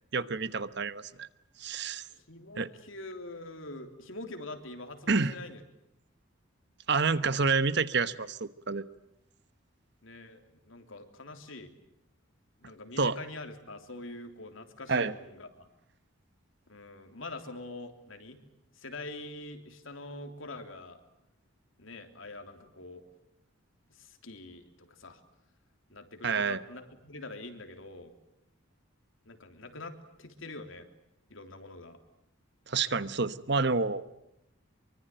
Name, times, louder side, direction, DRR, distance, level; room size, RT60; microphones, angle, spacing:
voice 1, 0.1-1.3 1.6-2.0 2.6-2.7 5.1-5.3 6.9-8.8 13.0-13.2 14.9-15.1 26.2-26.6 32.7-34.0, right 4 dB, 55° right, 14 dB, 1.1 m, -28 dB
voice 2, 2.1-5.6 10.0-11.7 12.6-15.7 16.7-18.4 18.7-21.0 21.8-23.0 23.9-25.2 25.9-28.1 29.2-30.9 31.3-32.0, left 2 dB, 75° left, 6 dB, 3.3 m, -44 dB
25.0 x 24.0 x 9.2 m, 0.83 s
head